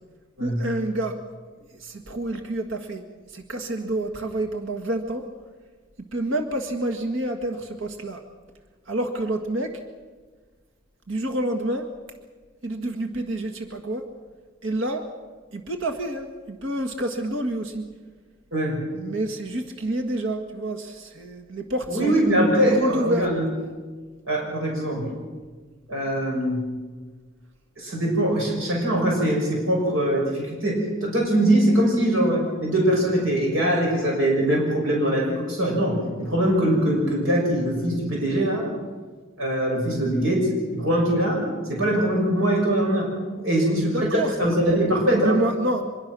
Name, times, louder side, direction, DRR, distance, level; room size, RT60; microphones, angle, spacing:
voice 1, 0.4-1.2 1.8-3.0 3.3-5.2 6.1-8.2 8.9-9.8 11.1-11.9 12.6-14.0 14.6-15.1 15.5-17.9 18.9-22.2 22.7-23.3 43.4-44.4 45.1-45.8, right 1 dB, 70° right, 5 dB, 1.8 m, -28 dB
voice 2, 21.9-23.5 24.3-25.1 25.9-26.6 27.8-38.7 39.4-41.4 41.7-43.1 43.4-45.4, right 1 dB, 90° right, -1 dB, 6.5 m, -22 dB
25.0 x 21.5 x 6.2 m, 1.4 s
head